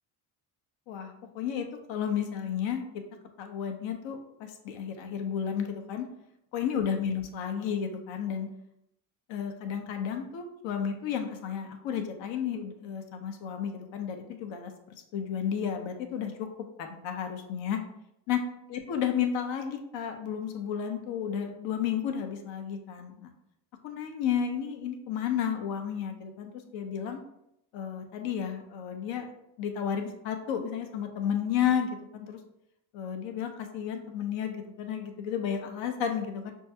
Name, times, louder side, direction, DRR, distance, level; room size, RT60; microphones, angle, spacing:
voice 1, 0.9-2.8 3.4-6.1 6.5-8.5 9.3-16.5 16.8-17.8 18.3-18.4 18.7-23.3 23.8-27.2 27.7-29.3 29.6-32.4 32.9-36.5, left 8 dB, 70° left, 5 dB, 0.7 m, -32 dB
5.3 x 2.4 x 2.7 m, 0.80 s
supercardioid pair, 70°, 47 cm